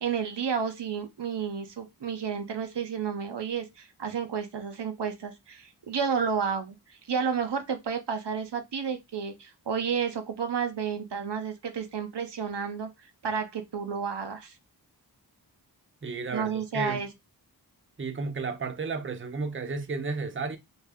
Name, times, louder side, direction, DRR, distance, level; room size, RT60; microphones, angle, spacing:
voice 1, 0.0-6.8 7.1-12.9 13.2-14.5 16.3-17.1, right 6 dB, 85° right, 0.6 m, -31 dB
voice 2, 16.0-17.0 18.0-20.6, right 4 dB, 30° right, 0.5 m, -33 dB
2.6 x 2.3 x 3.4 m
wide cardioid pair, 40°, 40 cm